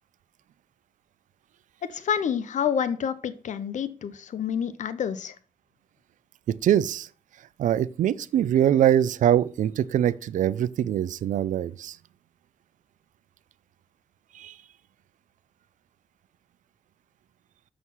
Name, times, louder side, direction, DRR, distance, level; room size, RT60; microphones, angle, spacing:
voice 1, 1.9-5.3, left 8 dB, 75° left, 0.7 m, -28 dB
voice 2, 6.5-7.1 7.6-12.0 14.3-14.5, right 10 dB, 85° right, 0.4 m, -23 dB
6.4 x 5.9 x 5.5 m
cardioid pair, 65°, 13 cm